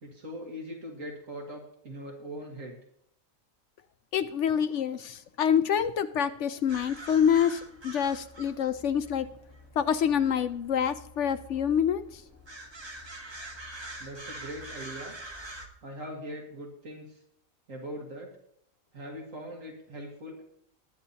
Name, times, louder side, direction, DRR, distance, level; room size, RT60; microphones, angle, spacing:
voice 1, 0.0-2.8 14.0-15.1 15.8-17.2 17.7-18.3 18.9-20.4, equal, 70° right, 0 dB, 2.1 m, -41 dB
voice 2, 4.1-9.3 9.8-12.2, left 8 dB, 65° left, 11 dB, 0.8 m, -26 dB
sound 1, 6.7-15.7, right 1 dB, 20° right, 1.3 m, -45 dB
20.0 x 9.9 x 2.8 m, 0.68 s
omnidirectional pair, 1.4 m